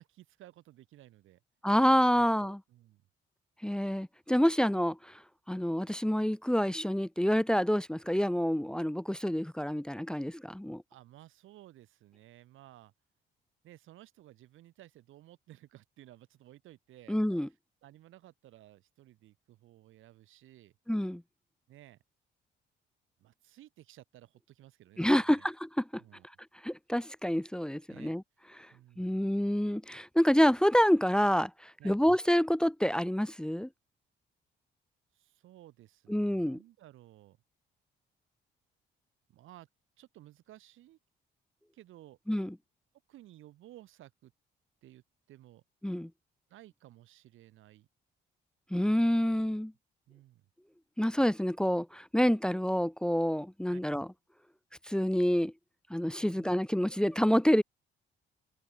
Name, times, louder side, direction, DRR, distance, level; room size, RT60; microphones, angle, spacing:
voice 1, 0.0-1.4 2.1-3.0 10.9-12.9 13.6-17.2 17.8-20.7 21.7-22.0 23.2-25.5 26.0-26.3 27.9-28.2 28.7-29.2 31.8-32.0 35.1-37.4 39.3-39.7 40.0-41.0 41.7-42.2 43.1-44.3 44.8-45.0 45.3-45.6 46.5-47.9 50.1-50.5 53.7-53.8 56.2-56.5, right 14 dB, 85° right, 5.4 m, -56 dB
voice 2, 1.6-2.6 3.6-5.1 5.5-10.8 17.1-17.5 20.9-21.2 25.0-26.0 26.6-28.2 28.6-28.7 29.0-33.7 36.1-36.6 42.3-42.5 45.8-46.1 48.7-49.7 51.0-54.1 54.9-55.5 55.9-57.6, equal, 5° left, 0.9 m, -27 dB
cardioid pair, 90°, 20 cm